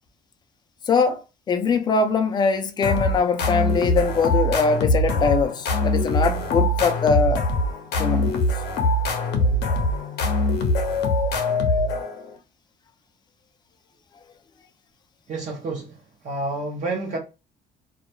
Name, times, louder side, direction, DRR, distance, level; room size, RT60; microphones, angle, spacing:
voice 1, 0.9-1.2 1.5-7.5 8.0-8.4, left 5 dB, 25° left, 0.4 m, -22 dB
sound 1, 2.8-12.3, left 1 dB, 75° left, 0.6 m, -23 dB
voice 2, 15.3-16.0 16.2-17.2, right 2 dB, 45° right, 0.7 m, -29 dB
2.3 x 2.0 x 2.9 m
cardioid pair, 110°, 17 cm